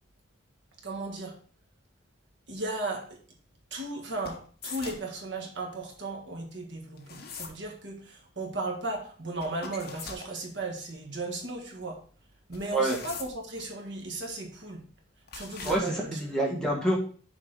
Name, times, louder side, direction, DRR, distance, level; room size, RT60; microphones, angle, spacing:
voice 1, 0.8-1.4 2.5-3.1 3.7-12.0 12.5-14.8 15.3-16.2, right 2 dB, 65° right, 1 dB, 1.4 m, -36 dB
sound 1, 4.2-5.1 7.0-7.6 9.4-10.3 12.5-13.6 15.3-15.8, left 5 dB, 50° left, 1.0 m, -41 dB
voice 2, 15.6-17.0, right 1 dB, 5° left, -3 dB, 1.4 m, -27 dB
6.5 x 4.7 x 3.8 m, 0.43 s
head